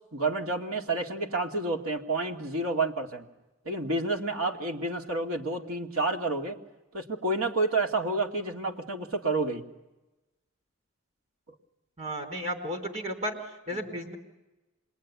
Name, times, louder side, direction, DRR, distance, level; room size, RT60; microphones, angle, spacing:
voice 1, 0.1-3.2 3.6-6.6 6.9-9.6 13.7-13.8, right 2 dB, 75° right, 2 dB, 2.6 m, -29 dB
voice 2, 12.0-13.3 13.7-14.2, equal, 35° right, 5 dB, 4.4 m, -33 dB
27.0 x 22.0 x 9.7 m, 1.0 s
head